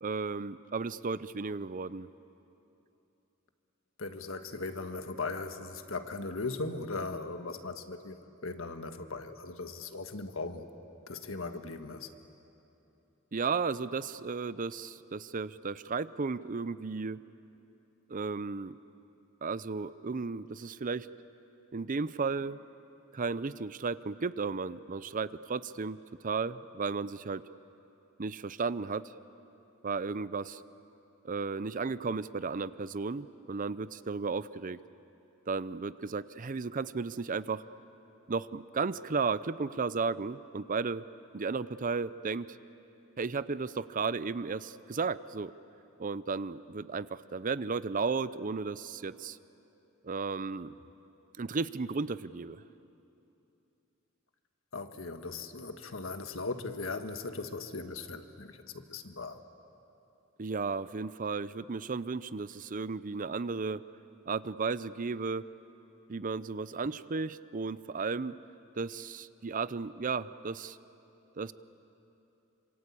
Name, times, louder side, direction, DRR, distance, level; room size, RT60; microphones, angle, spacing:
voice 1, 0.0-2.1 13.3-17.2 18.1-18.8 19.4-21.1 21.7-22.6 23.1-27.4 28.2-29.1 29.8-30.6 31.2-34.8 35.5-37.6 38.3-41.0 41.3-42.5 43.2-45.5 46.0-49.4 50.0-50.7 51.4-52.6 60.4-63.8 64.3-65.4 66.1-68.3 68.8-70.8 71.4-71.5, right 4 dB, 40° right, 16 dB, 0.6 m, -34 dB
voice 2, 4.0-10.7 11.1-12.1 54.7-59.4, left 3 dB, 80° left, 7 dB, 1.6 m, -38 dB
27.0 x 26.0 x 8.5 m, 2.9 s
head